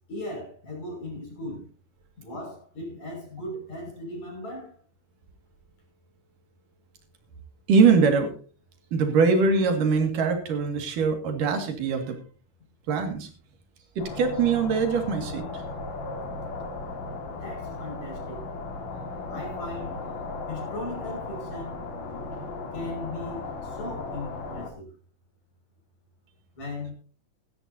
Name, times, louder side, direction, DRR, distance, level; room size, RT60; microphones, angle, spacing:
voice 1, 0.1-1.6 2.2-4.7 17.4-18.4 19.3-20.0 20.5-21.7 22.7-24.9 26.6-26.9, left 1 dB, 60° left, 0 dB, 7.2 m, -37 dB
voice 2, 7.7-8.3 8.9-12.2 12.9-13.3 14.0-15.6, right 5 dB, 90° right, 5 dB, 3.8 m, -22 dB
sound 1, 14.0-24.7, left 3 dB, 85° left, 3.7 m, -36 dB
17.0 x 13.5 x 2.8 m, 0.37 s
omnidirectional pair, 3.7 m